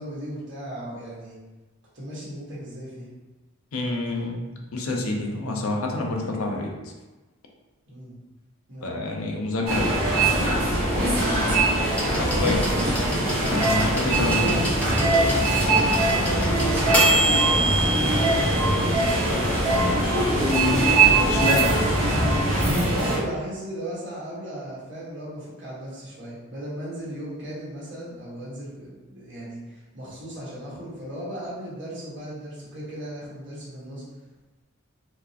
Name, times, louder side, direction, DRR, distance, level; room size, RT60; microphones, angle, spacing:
voice 1, 0.0-1.4 1.9-3.1 7.9-8.1 8.7-9.0 12.1-13.6 14.0-15.7 16.1-19.8 22.9-34.0, right 1 dB, 60° right, -8 dB, 1.4 m, -36 dB
voice 2, 3.7-4.4 4.7-6.7 8.8-10.0 12.2-12.6 13.5-14.7 20.4-21.0 21.3-21.8, left 2 dB, 85° left, 1 dB, 0.6 m, -27 dB
sound 1, 9.7-23.2, right 2 dB, 85° right, 1.5 m, -21 dB
sound 2, 12.0-19.7 20.8-20.9, right 2 dB, 5° left, 0.6 m, -28 dB
4.4 x 2.1 x 2.8 m, 1.2 s
head